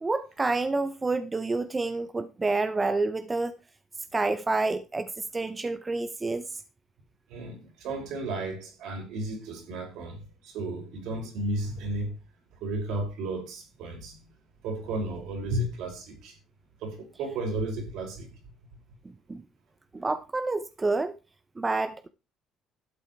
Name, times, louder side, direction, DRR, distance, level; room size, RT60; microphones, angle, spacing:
voice 1, 0.0-3.6 4.1-6.6 19.3-19.4 19.9-21.1 21.6-22.1, right 3 dB, 25° right, 0.8 m, -28 dB
voice 2, 7.3-12.2 12.6-14.2 14.6-16.3 16.8-18.3, right 2 dB, 75° right, 5.5 m, -33 dB
12.0 x 8.0 x 4.6 m
supercardioid pair, 75°, 0 cm